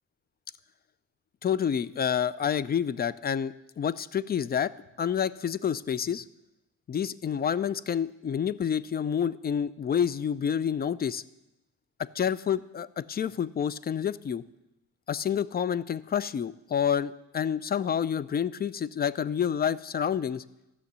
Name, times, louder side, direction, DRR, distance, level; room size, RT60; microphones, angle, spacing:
voice 1, 1.4-4.7 5.0-6.2 6.9-11.2 12.0-14.4 15.1-20.4, left 8 dB, 30° left, 18 dB, 0.4 m, -28 dB
13.0 x 6.3 x 8.1 m, 0.93 s
cardioid pair, 90°, 30 cm